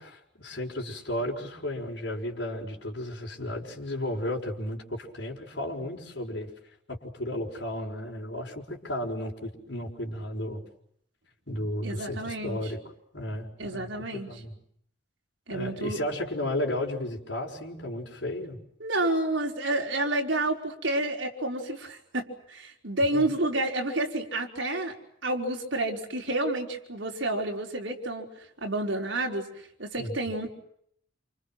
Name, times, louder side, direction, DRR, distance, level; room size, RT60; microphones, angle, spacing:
voice 1, 0.0-6.5 6.9-10.6 11.5-12.8 13.1-13.9 14.3-14.6 15.5-18.6 23.1-23.2 30.0-30.1, left 1 dB, 60° left, -1 dB, 6.0 m, -33 dB
voice 2, 11.8-12.6 13.6-14.3 15.5-16.0 18.8-24.9 25.2-28.3 28.6-29.5 29.8-30.5, right 2 dB, 70° right, 1 dB, 5.0 m, -29 dB
29.0 x 28.5 x 6.2 m, 0.68 s
head